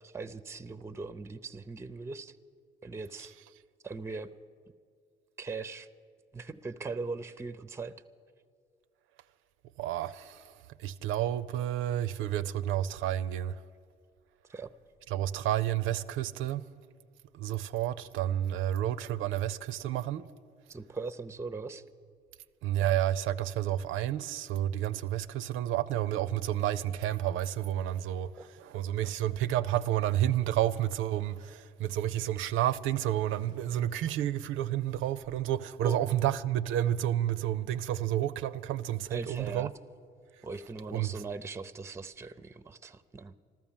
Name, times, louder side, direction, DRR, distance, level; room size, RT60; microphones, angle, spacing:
voice 1, 0.0-2.4 2.8-3.3 3.8-4.3 5.4-5.9 6.3-8.0 14.5-14.7 20.7-21.8 28.4-28.5 35.8-36.0 39.1-39.7 40.4-43.3, right 4 dB, 15° right, 0.5 m, -40 dB
voice 2, 9.8-10.5 10.8-13.6 15.1-16.7 17.3-20.3 22.6-39.7 40.9-41.2, right 12 dB, 90° right, 0.5 m, -30 dB
14.0 x 13.0 x 7.3 m
cardioid pair, 90°, 20 cm